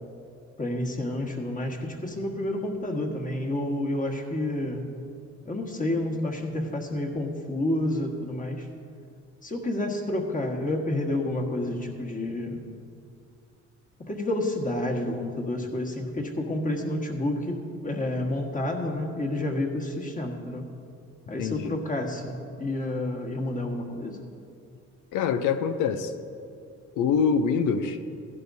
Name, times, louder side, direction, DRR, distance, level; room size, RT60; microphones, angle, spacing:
voice 1, 0.6-4.8 5.4-8.7 9.4-12.6 14.0-20.7 21.3-24.2, left 1 dB, 25° left, 1 dB, 1.6 m, -29 dB
voice 2, 21.4-21.8 25.1-26.1 27.0-28.1, left 6 dB, 85° left, 9 dB, 0.7 m, -25 dB
15.5 x 11.5 x 2.7 m, 2.4 s
cardioid pair, 90°, 30 cm